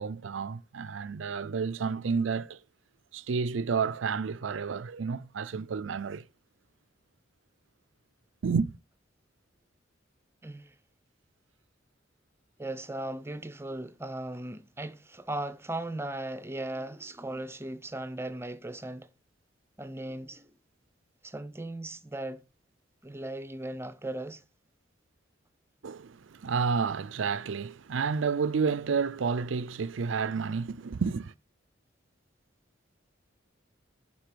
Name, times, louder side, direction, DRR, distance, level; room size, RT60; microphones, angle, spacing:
voice 1, 0.0-2.6 3.1-6.2 8.4-8.7 25.8-31.3, right 5 dB, 70° right, 0.5 m, -30 dB
voice 2, 10.4-10.7 12.6-19.1 19.8-20.5 21.2-22.4 23.0-24.4, right 1 dB, 15° right, 0.8 m, -37 dB
10.5 x 5.5 x 6.8 m
head